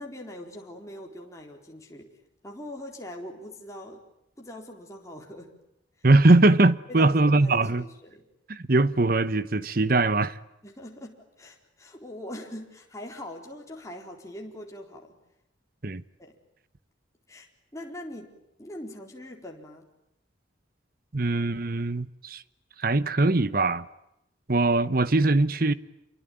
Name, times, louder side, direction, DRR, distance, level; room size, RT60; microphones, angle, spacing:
voice 1, 0.0-2.1 2.4-4.0 4.4-5.5 6.0-6.1 6.9-8.3 10.6-15.2 16.2-16.3 17.3-19.9, left 1 dB, 15° left, 4.2 m, -42 dB
voice 2, 6.0-7.8 8.5-10.4 15.8-16.0 21.1-22.4 22.8-23.8 24.5-25.7, right 2 dB, 50° right, 1.0 m, -21 dB
28.0 x 23.5 x 9.1 m
head